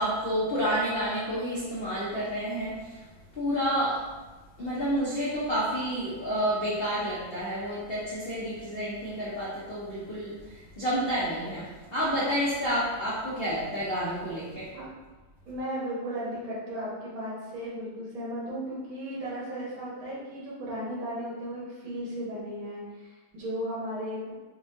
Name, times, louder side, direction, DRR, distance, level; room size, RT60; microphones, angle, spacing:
voice 1, 0.0-3.0 3.3-4.1 4.6-14.7, equal, 75° left, -8 dB, 0.5 m, -29 dB
voice 2, 15.5-24.3, equal, 80° right, -6 dB, 2.1 m, -35 dB
5.9 x 2.4 x 2.6 m, 1.2 s
omnidirectional pair, 2.2 m